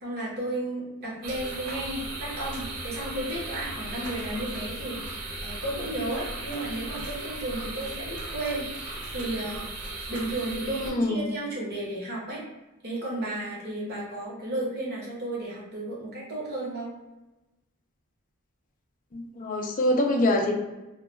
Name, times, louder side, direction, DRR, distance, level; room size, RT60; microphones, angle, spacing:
voice 1, 0.0-12.4 12.8-16.9, right 1 dB, 45° right, -4 dB, 0.9 m, -33 dB
sound 1, 1.2-10.9, right 2 dB, 85° right, 0.5 m, -36 dB
voice 2, 10.7-11.2 19.1-20.6, left 1 dB, 35° left, 2 dB, 0.4 m, -25 dB
2.2 x 2.2 x 3.0 m, 1.0 s
head